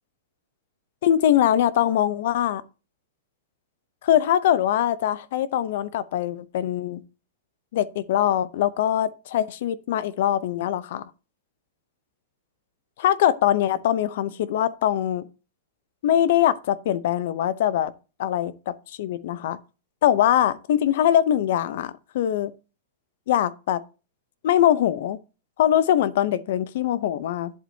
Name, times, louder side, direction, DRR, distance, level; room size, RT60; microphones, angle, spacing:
voice 1, 1.0-2.6 4.0-7.0 7.7-11.1 13.0-15.2 16.0-17.9 18.2-19.6 20.0-22.5 23.3-23.8 24.4-25.2 25.6-27.5, left 11 dB, 45° left, 0.7 m, -22 dB
11.0 x 8.0 x 2.8 m
supercardioid pair, 175°, 0 cm